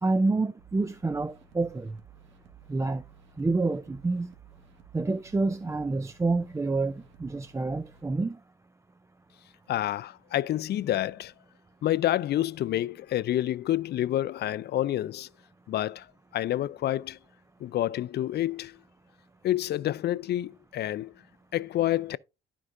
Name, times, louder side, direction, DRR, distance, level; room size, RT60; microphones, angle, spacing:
voice 1, 0.0-1.9 2.7-3.0 3.4-4.3 4.9-8.4, right 3 dB, 15° right, 0.4 m, -28 dB
sound 1, 0.6-8.1, right 8 dB, 70° right, 1.7 m, -55 dB
voice 2, 9.7-11.3 11.8-15.3 15.7-16.1 16.3-17.2 17.6-18.8 19.4-21.1 21.5-22.2, left 13 dB, 55° left, 0.4 m, -28 dB
12.5 x 4.7 x 2.5 m
cardioid pair, 90°, 20 cm